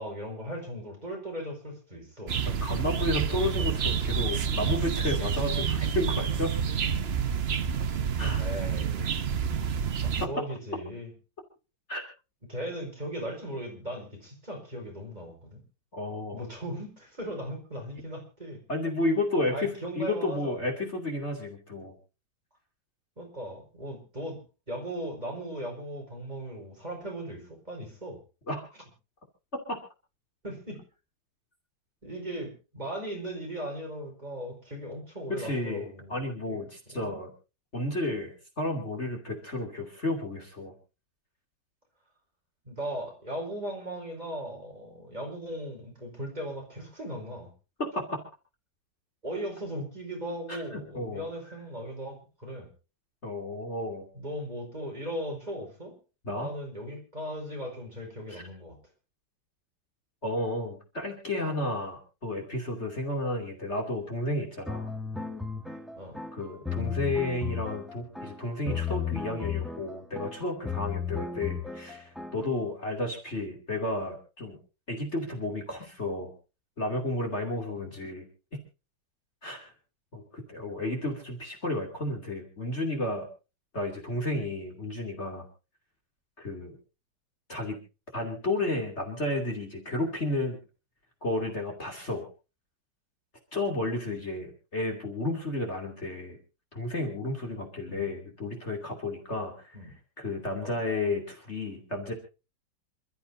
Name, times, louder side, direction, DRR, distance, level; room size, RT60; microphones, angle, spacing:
voice 1, 0.0-2.3 3.6-3.8 8.4-9.1 9.6-11.1 12.5-15.6 16.3-18.6 19.5-20.7 23.2-24.4 24.7-28.2 30.4-30.8 32.0-36.2 36.5-36.6 36.9-37.2 42.6-47.5 49.2-52.7 54.1-56.0 56.3-58.8 66.0-66.2 77.8-78.0 94.1-94.2 97.9-98.1 99.7-99.9 100.6-100.8, right 1 dB, 20° right, 0 dB, 5.0 m, -38 dB
sound 1, 2.3-10.3, right 7 dB, 45° right, 0.8 m, -28 dB
voice 2, 2.6-6.5 8.2-8.5 10.2-10.3 11.9-12.1 15.9-16.4 18.7-19.7 20.0-21.9 28.5-28.6 29.7-29.8 35.3-37.3 37.7-40.7 47.8-48.2 50.5-51.3 53.2-54.1 56.2-56.5 58.3-58.4 60.2-64.9 66.3-74.6 74.9-76.3 76.8-78.2 78.5-78.6 79.4-79.7 80.1-83.2 83.7-85.5 86.4-86.7 87.5-87.8 88.1-90.6 91.2-92.3 93.5-96.4 96.7-99.8 100.2-102.1, left 2 dB, 35° left, 2 dB, 2.9 m, -32 dB
sound 2, 64.7-72.6, left 6 dB, ahead, 1.1 m, -35 dB
27.5 x 13.0 x 2.7 m, 0.32 s
omnidirectional pair, 2.0 m